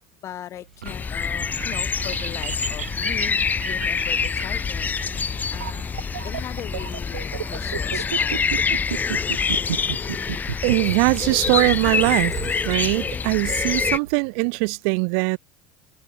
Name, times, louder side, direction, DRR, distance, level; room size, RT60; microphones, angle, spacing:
voice 1, 0.2-4.9 5.5-8.5, left 12 dB, 45° left, 3.5 m, -39 dB
sound 1, 0.6-14.7, right 10 dB, 90° right, 1.8 m, -34 dB
Gurgling / Liquid, 0.7-13.3, equal, ahead, 3.5 m, -44 dB
sound 2, 0.9-14.0, left 6 dB, 25° left, 1.5 m, -26 dB
voice 2, 10.6-12.3 12.6-15.4, right 40 dB or more, 65° right, 0.5 m, -21 dB
hypercardioid pair, 85°, 7 cm